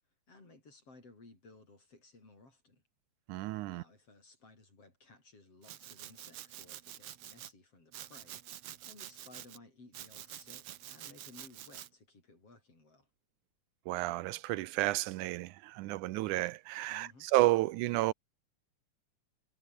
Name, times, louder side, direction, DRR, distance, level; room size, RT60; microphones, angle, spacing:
voice 1, 0.3-2.8 3.7-13.1 16.9-17.3, left 3 dB, 45° left, 8.7 m, -58 dB
voice 2, 3.3-3.8 13.9-18.1, right 18 dB, 80° right, 2.1 m, -31 dB
Domestic sounds home sounds, 5.6-7.5 7.9-9.6 9.9-11.9, right 12 dB, 60° right, 1.9 m, -48 dB
omnidirectional pair, 3.6 m